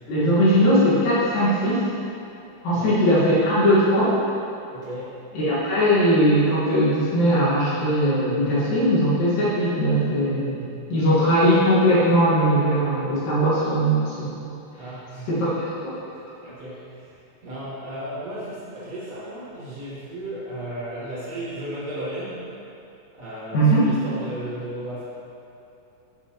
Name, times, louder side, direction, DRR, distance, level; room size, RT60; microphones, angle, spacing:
voice 1, 0.1-1.8 2.6-4.2 5.3-14.3 15.3-16.0 23.5-23.9, equal, 80° left, -11 dB, 3.4 m, -20 dB
voice 2, 4.7-5.2 14.8-15.3 16.4-22.5 23.1-25.0, right 1 dB, 80° right, -8 dB, 0.7 m, -35 dB
14.5 x 6.0 x 3.0 m, 2.8 s
omnidirectional pair, 3.9 m